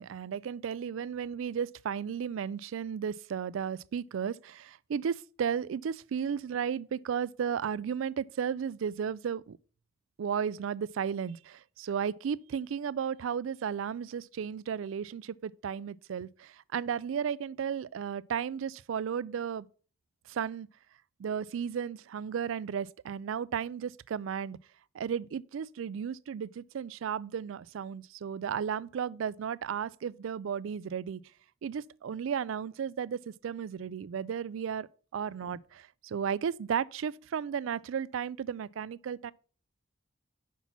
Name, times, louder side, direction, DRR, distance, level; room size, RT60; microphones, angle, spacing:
voice 1, 0.0-9.6 10.2-19.7 20.3-20.7 21.2-24.6 24.9-31.2 31.6-34.9 35.1-39.3, right 7 dB, 80° right, 0.3 m, -34 dB
6.0 x 5.8 x 5.5 m
head